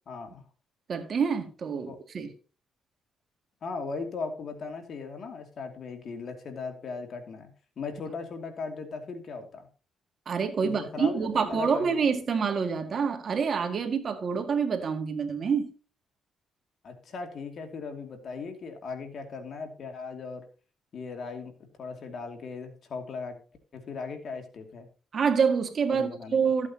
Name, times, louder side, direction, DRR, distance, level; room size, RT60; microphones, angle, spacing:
voice 1, 0.1-0.4 1.9-2.0 3.6-7.5 7.8-9.7 10.6-12.0 16.8-20.4 20.9-23.4 23.7-24.9 25.9-26.4, left 4 dB, 55° left, 2.5 m, -38 dB
voice 2, 0.9-2.3 10.3-15.7 25.1-26.7, right 6 dB, 50° right, 2.0 m, -27 dB
14.5 x 8.4 x 2.9 m
cardioid pair, 90°, 0 cm